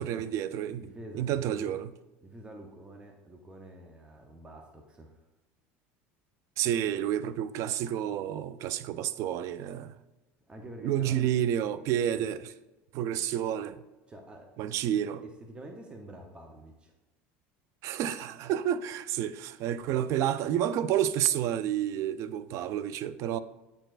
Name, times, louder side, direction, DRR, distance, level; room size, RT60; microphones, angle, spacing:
voice 1, 0.0-0.8 1.1-1.9 6.6-10.0 10.8-12.4 12.9-13.8 14.6-15.2 17.8-23.4, right 10 dB, 55° right, 0.3 m, -30 dB
voice 2, 0.8-1.7 2.2-5.1 10.5-11.2 12.2-12.3 14.1-14.5 15.2-16.9 19.9-20.0, right 1 dB, 15° right, 0.7 m, -47 dB
8.7 x 4.6 x 2.4 m
supercardioid pair, 115°, 6 cm